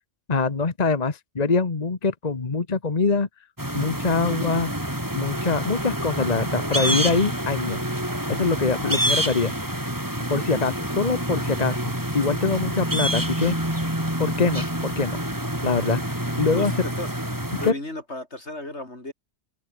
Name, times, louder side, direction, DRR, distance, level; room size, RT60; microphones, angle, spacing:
voice 1, 0.3-3.3 3.7-4.7 5.1-7.8 8.3-9.5 10.3-13.5 14.2-15.2 15.6-16.0 16.4-16.7 17.6-17.7, left 4 dB, 40° left, 1.4 m, -24 dB
sound 1, 3.6-17.7, right 1 dB, 15° right, 4.7 m, -27 dB
voice 2, 16.5-17.1 17.6-19.1, left 1 dB, 80° left, 6.8 m, -34 dB
open air
omnidirectional pair, 1.1 m